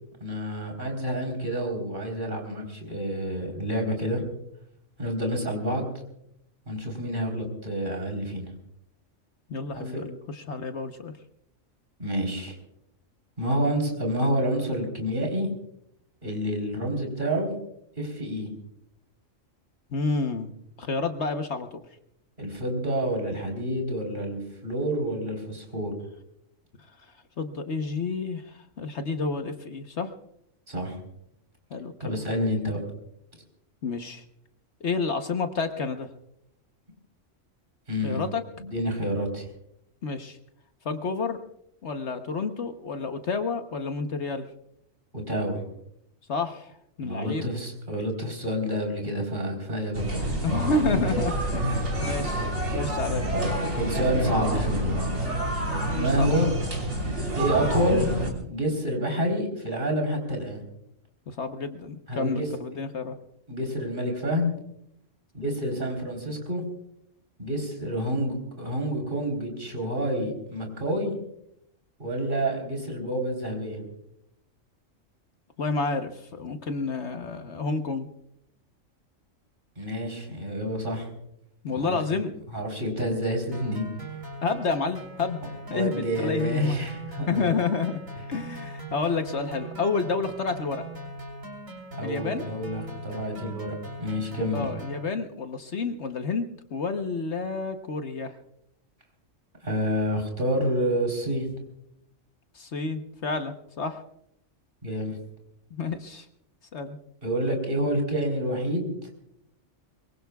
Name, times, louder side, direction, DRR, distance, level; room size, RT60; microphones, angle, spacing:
voice 1, 0.2-4.2 5.0-5.9 6.7-8.5 9.7-10.0 12.0-12.5 13.4-15.5 16.2-17.5 18.0-18.5 22.4-25.9 30.7-31.0 32.0-32.8 37.9-38.2 38.6-39.4 45.1-45.6 47.0-50.0 51.6-51.8 53.3-54.9 55.9-56.5 57.4-58.1 58.5-60.6 62.1-62.5 63.5-64.5 65.3-66.6 67.4-71.1 72.0-73.8 79.8-81.1 81.7-82.2 82.5-83.9 85.7-87.6 92.0-94.6 99.6-101.5 104.8-105.2 107.2-109.1, equal, 40° right, 1 dB, 4.0 m, -28 dB
voice 2, 9.5-11.1 19.9-21.7 27.4-30.1 31.7-32.2 33.8-34.2 34.8-36.1 38.0-38.4 40.0-40.4 40.8-41.4 41.8-44.5 46.3-46.7 47.0-47.5 50.4-53.3 56.0-56.4 61.3-63.1 75.6-78.1 81.6-82.3 84.4-85.4 85.7-86.8 87.3-88.0 88.3-90.8 92.0-92.5 94.5-98.3 102.5-104.0 105.7-106.3 106.7-107.0, left 4 dB, 60° left, 7 dB, 1.2 m, -30 dB
sound 1, 49.9-58.3, right 1 dB, 60° right, 3.7 m, -28 dB
sound 2, 83.5-95.0, right 1 dB, 85° right, 3.7 m, -40 dB
23.5 x 23.0 x 2.3 m, 0.77 s
omnidirectional pair, 1.4 m